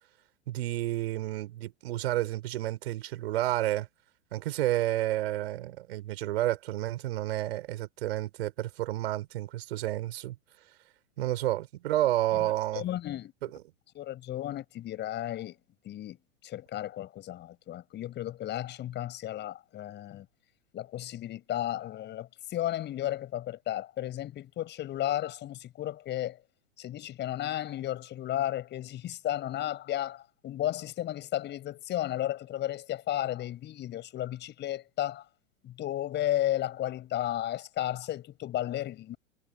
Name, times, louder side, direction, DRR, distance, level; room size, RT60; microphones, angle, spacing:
voice 1, 0.5-3.9 4.3-10.3 11.2-12.8, right 14 dB, 50° right, 5.0 m, -30 dB
voice 2, 12.4-13.3 13.9-15.6 15.8-16.2 16.4-20.3 20.7-26.4 26.8-35.2 35.6-39.2, left 13 dB, 25° left, 6.7 m, -33 dB
figure-of-eight pair, 100°, 39 cm